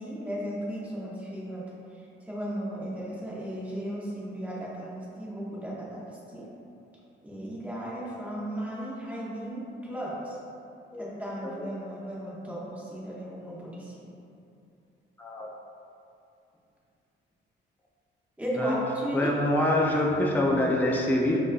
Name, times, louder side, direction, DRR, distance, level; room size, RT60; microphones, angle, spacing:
voice 1, 0.0-1.6 2.3-6.0 6.3-6.5 7.2-10.4 11.0-14.1 18.4-19.3, equal, 5° right, -7 dB, 1.0 m, -35 dB
voice 2, 15.2-15.5 18.5-18.8 19.1-21.4, left 1 dB, 10° left, -1 dB, 0.4 m, -25 dB
5.0 x 2.6 x 2.3 m, 2.6 s
cardioid pair, 90°, 20 cm